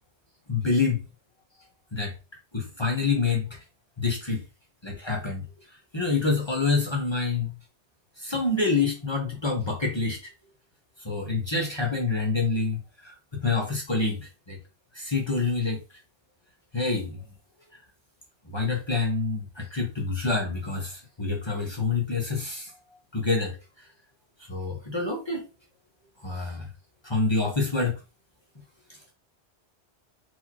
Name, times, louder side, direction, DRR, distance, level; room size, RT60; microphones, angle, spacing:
voice 1, 0.5-1.0 1.9-2.1 2.5-3.6 4.0-4.4 4.8-5.4 5.9-7.5 8.2-10.3 11.0-14.6 14.9-15.8 16.7-17.2 18.5-22.7 23.1-23.6 24.5-25.5 26.2-26.7 27.0-28.0, left 4 dB, 25° left, 1.1 m, -27 dB
4.5 x 3.5 x 2.9 m
omnidirectional pair, 1.2 m